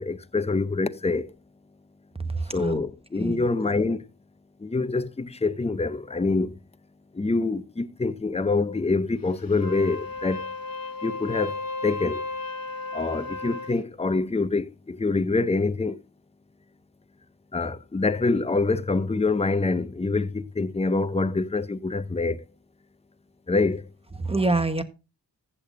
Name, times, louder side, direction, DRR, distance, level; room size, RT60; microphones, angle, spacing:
voice 1, 0.0-1.3 2.5-4.0 4.6-6.5 7.1-10.5 11.0-12.2 12.9-16.0 17.5-22.4 23.5-23.9, left 3 dB, 15° left, 0.6 m, -25 dB
voice 2, 2.3-2.8 3.2-3.5 24.2-24.8, right 2 dB, 15° right, 1.3 m, -26 dB
Wind instrument woodwind instrument, 9.5-13.8, left 3 dB, 55° left, 1.1 m, -34 dB
14.5 x 8.4 x 2.6 m
wide cardioid pair, 60°, 42 cm